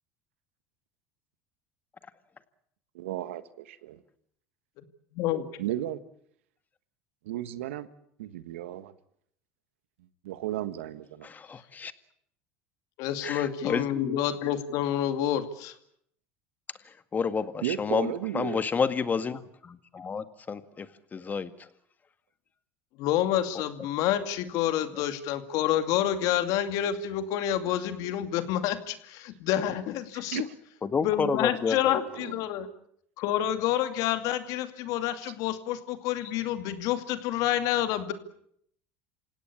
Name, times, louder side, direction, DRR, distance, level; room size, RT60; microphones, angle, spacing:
voice 1, 2.9-4.0 5.6-6.0 7.2-7.9 8.2-8.9 10.0-11.3 17.6-18.6 30.1-30.5 32.1-32.4 35.2-35.3, right 13 dB, 90° right, 13 dB, 1.6 m, -34 dB
voice 2, 5.1-5.6 13.0-15.7 23.0-30.4 31.0-32.7 33.2-38.1, left 11 dB, 65° left, 10 dB, 2.5 m, -28 dB
voice 3, 11.2-11.9 13.2-14.2 16.9-21.7 24.9-25.0 30.8-32.0, left 5 dB, 25° left, 12 dB, 1.9 m, -30 dB
28.0 x 17.0 x 8.6 m, 0.69 s
supercardioid pair, 105°, 7 cm